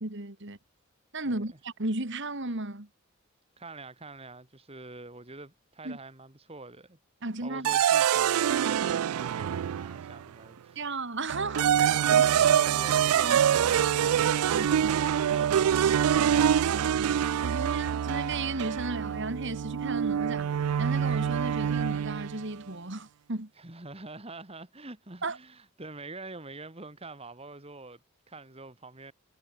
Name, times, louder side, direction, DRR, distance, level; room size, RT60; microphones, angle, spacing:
voice 1, 0.0-0.6 1.1-2.9 5.8-6.0 7.2-7.7 10.8-12.2 13.2-13.7 14.5-15.0 16.7-20.5 20.8-23.5 25.2-25.4, right 2 dB, 55° right, 2.3 m, -35 dB
voice 2, 3.6-7.0 7.4-10.9 11.9-14.6 23.6-29.1, right 3 dB, 25° right, 2.0 m, -45 dB
sound 1, 7.6-10.2 11.3-22.4, right 9 dB, 85° right, 0.4 m, -25 dB
head